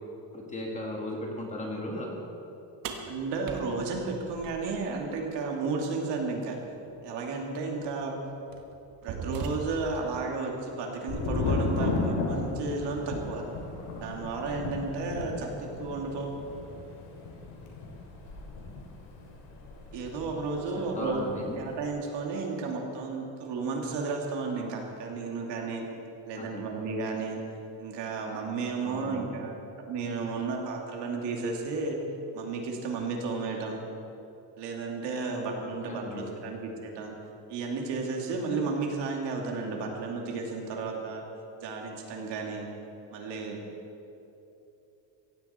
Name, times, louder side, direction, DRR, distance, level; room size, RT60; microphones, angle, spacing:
voice 1, 0.3-2.1 20.7-21.6 26.4-26.7 28.8-29.3 35.6-36.3, left 1 dB, 15° left, -1 dB, 1.7 m, -37 dB
sound 1, 2.8-5.0 6.9-7.0 7.8-8.0 8.5-10.0, right 4 dB, 50° right, 1.4 m, -39 dB
voice 2, 3.1-6.6 7.0-8.2 9.0-13.4 14.0-16.4 19.9-21.2 21.6-25.9 26.2-27.4 27.8-32.0 32.3-33.8 34.6-37.1 37.5-41.2 41.6-42.7 43.1-43.6, right 4 dB, 65° right, 1 dB, 2.6 m, -33 dB
Thunder, 11.1-20.7 21.0-21.7, left 3 dB, 90° left, 3.3 m, -34 dB
16.5 x 16.0 x 4.4 m, 3.0 s
cardioid pair, 175°, 44 cm